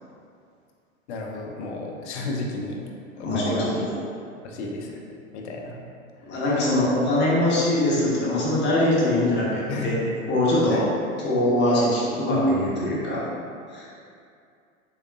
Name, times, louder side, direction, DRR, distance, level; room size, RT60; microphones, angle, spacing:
voice 1, 1.1-2.8 3.2-3.7 4.4-5.0 5.3-5.8 6.2-6.4 9.7-10.0 10.7-10.9, left 2 dB, 55° left, 0 dB, 0.7 m, -32 dB
voice 2, 3.2-3.9 6.3-9.9 10.3-10.8 11.2-13.2 13.7-13.9, left 1 dB, 25° left, -7 dB, 1.0 m, -22 dB
3.9 x 3.5 x 2.3 m, 2.4 s
figure-of-eight pair, 95°, 42 cm